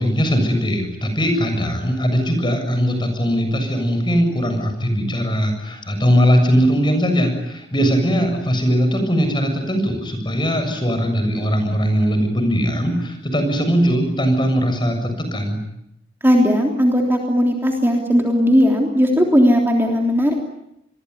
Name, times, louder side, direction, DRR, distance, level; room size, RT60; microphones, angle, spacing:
voice 1, 0.0-15.6, equal, 25° left, 6 dB, 7.2 m, -20 dB
voice 2, 16.2-20.3, equal, 15° right, 1 dB, 3.3 m, -17 dB
27.5 x 22.0 x 9.6 m, 0.81 s
head